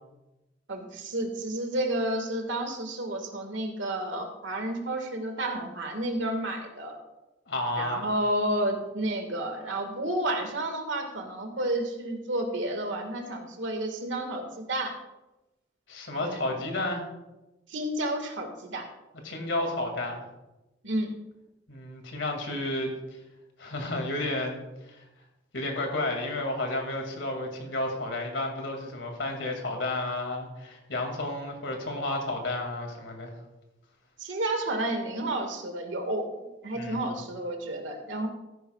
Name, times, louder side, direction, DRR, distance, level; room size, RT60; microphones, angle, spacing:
voice 1, 0.7-7.0 7.8-14.9 16.2-16.4 17.7-18.9 20.8-21.1 34.2-36.3 36.6-38.3, right 1 dB, 80° right, 5 dB, 1.7 m, -31 dB
voice 2, 7.5-8.1 15.9-17.0 19.2-20.2 21.7-22.9 23.6-25.0 25.5-33.3 36.7-37.0, left 2 dB, 75° left, 3 dB, 2.2 m, -32 dB
14.0 x 10.5 x 2.3 m, 1.0 s
head